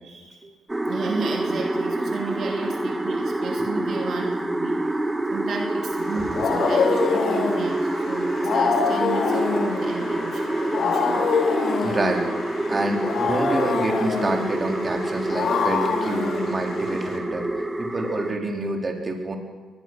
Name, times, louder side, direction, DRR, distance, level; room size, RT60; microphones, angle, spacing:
voice 1, 0.0-0.5 0.9-5.0 5.3-11.3, right 5 dB, 60° right, 2 dB, 2.9 m, -34 dB
sound 1, 0.7-18.3, right 1 dB, 15° right, 1.7 m, -27 dB
Wild animals, 6.0-17.2, left 5 dB, 65° left, 3.2 m, -26 dB
voice 2, 11.8-12.3 12.7-17.5 17.8-19.4, right 2 dB, 30° right, 2 dB, 3.8 m, -27 dB
22.5 x 20.5 x 6.2 m, 1.5 s
cardioid pair, 90°, 0 cm